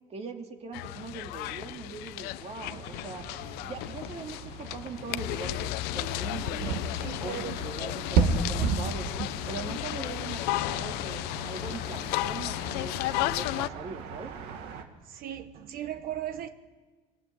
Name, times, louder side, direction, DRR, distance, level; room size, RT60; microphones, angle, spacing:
voice 1, 0.1-3.2 3.6-9.1 9.5-14.3, right 4 dB, 40° right, 2.6 m, -41 dB
sound 1, 0.7-13.7, left 17 dB, 85° left, 0.7 m, -34 dB
sound 2, 2.6-14.8, right 5 dB, 85° right, 2.3 m, -35 dB
voice 2, 6.9-7.6 15.0-16.5, right 11 dB, 65° right, 1.2 m, -37 dB
23.0 x 21.0 x 9.4 m
cardioid pair, 115°, 16 cm